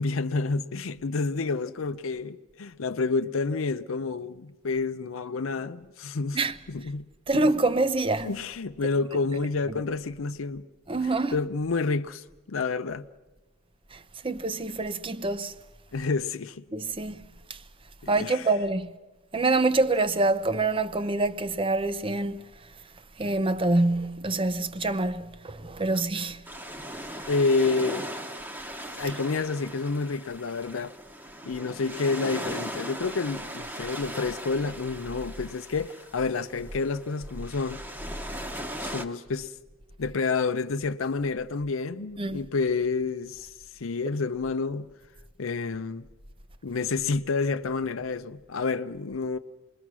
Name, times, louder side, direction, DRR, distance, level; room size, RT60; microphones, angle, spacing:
voice 1, 0.0-6.4 6.7-7.1 7.3-7.5 8.2-10.6 11.3-13.1 15.9-16.6 18.0-18.5 27.3-28.1 28.9-30.9 31.4-37.8 38.8-39.5 40.0-44.9 45.4-46.0 46.6-49.4, left 4 dB, 85° left, 0.6 m, -29 dB
voice 2, 7.3-8.3 9.7-9.8 10.9-11.4 13.9-14.0 14.2-15.5 16.7-17.2 18.1-18.9 19.3-22.5 23.2-26.4 42.2-42.4, right 2 dB, 25° right, 0.7 m, -26 dB
sound 1, 26.5-39.1, equal, 10° right, 1.1 m, -39 dB
27.5 x 21.0 x 6.1 m
head